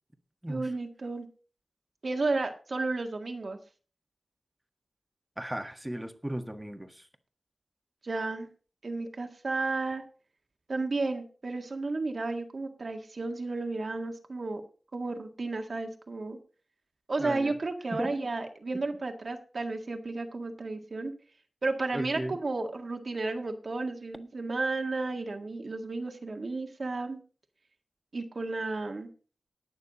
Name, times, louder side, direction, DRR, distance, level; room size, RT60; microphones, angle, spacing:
voice 1, 0.5-1.3 2.0-3.6 8.0-8.5 8.8-10.0 10.7-14.6 14.9-16.4 17.1-21.1 21.6-27.2 28.1-29.1, right 3 dB, 60° right, 4 dB, 1.8 m, -33 dB
voice 2, 5.4-7.1 17.2-17.6 17.9-18.2 21.9-22.4, right 1 dB, 10° right, 6 dB, 1.5 m, -36 dB
19.0 x 6.7 x 4.0 m, 0.38 s
wide cardioid pair, 70°, 0 cm